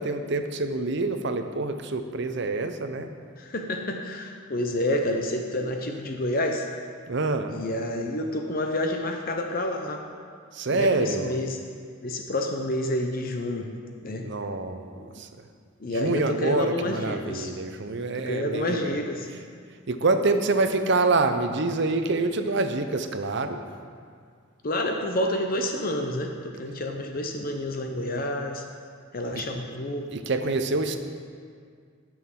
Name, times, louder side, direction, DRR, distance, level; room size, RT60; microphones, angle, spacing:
voice 1, 0.0-3.1 7.1-7.6 10.5-11.4 14.2-15.5 15.9-19.0 19.3-19.5 19.9-23.6 29.3-29.4 30.1-31.0, right 3 dB, 55° right, 7 dB, 0.6 m, -26 dB
voice 2, 3.4-6.7 7.5-10.0 10.7-11.5 12.0-13.7 14.0-14.3 15.0-15.3 15.8-17.5 18.1-19.3 24.6-28.6 29.1-30.1, left 1 dB, 45° left, 3 dB, 0.6 m, -29 dB
16.0 x 6.1 x 3.7 m, 2.1 s
head